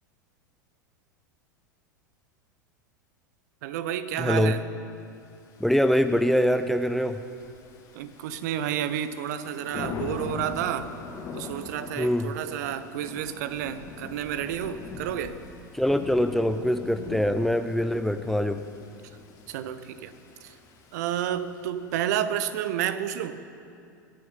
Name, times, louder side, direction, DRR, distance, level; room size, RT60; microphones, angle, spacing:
voice 1, 3.6-4.6 7.9-10.9 11.3-15.4 19.5-20.1 20.4-20.5 20.9-23.4, right 10 dB, 55° right, 13 dB, 0.7 m, -30 dB
voice 2, 4.2-4.6 5.6-7.2 12.0-12.3 15.7-18.6, equal, ahead, 10 dB, 0.5 m, -24 dB
Thunder / Rain, 5.4-22.0, left 4 dB, 35° left, 2.1 m, -42 dB
21.5 x 7.6 x 5.5 m, 2.5 s
figure-of-eight pair, 85°, 11 cm